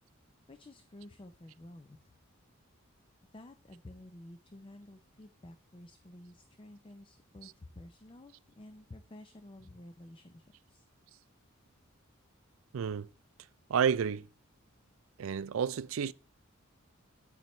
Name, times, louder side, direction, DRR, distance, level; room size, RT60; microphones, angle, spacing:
voice 1, 0.5-2.1 3.3-10.9, left 1 dB, 25° left, 0.5 m, -52 dB
voice 2, 12.7-13.1 13.7-14.3 15.2-16.1, right 7 dB, 75° right, 0.4 m, -30 dB
9.1 x 8.6 x 3.1 m
head